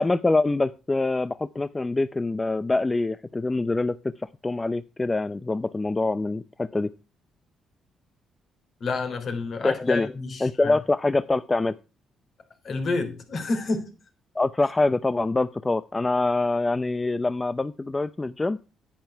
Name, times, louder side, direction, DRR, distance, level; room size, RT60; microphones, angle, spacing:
voice 1, 0.0-6.9 9.6-10.1 10.4-11.7 14.4-18.6, left 2 dB, 20° left, 0.5 m, -25 dB
voice 2, 8.8-10.8 12.6-13.9, left 3 dB, 55° left, 3.7 m, -29 dB
10.0 x 9.7 x 4.5 m
cardioid pair, 90°, 0 cm